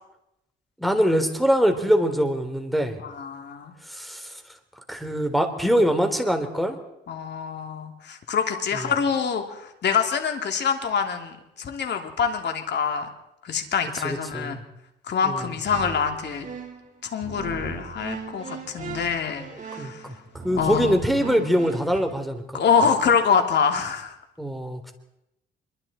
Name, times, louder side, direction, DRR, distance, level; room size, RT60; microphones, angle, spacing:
voice 1, 0.8-3.0 3.9-4.3 4.9-6.8 8.7-8.9 14.0-14.6 15.2-15.4 19.8-20.1 20.4-22.6 24.4-24.9, equal, ahead, 6 dB, 3.5 m, -23 dB
voice 2, 3.0-3.7 7.1-13.1 13.4-14.6 15.0-16.5 17.0-20.1 20.6-21.4 22.5-24.2, left 6 dB, 60° left, 5 dB, 3.1 m, -25 dB
sound 1, 15.4-16.9 17.2-22.0, right 5 dB, 40° right, 5.5 m, -38 dB
26.0 x 23.0 x 4.4 m, 0.87 s
cardioid pair, 90°, 20 cm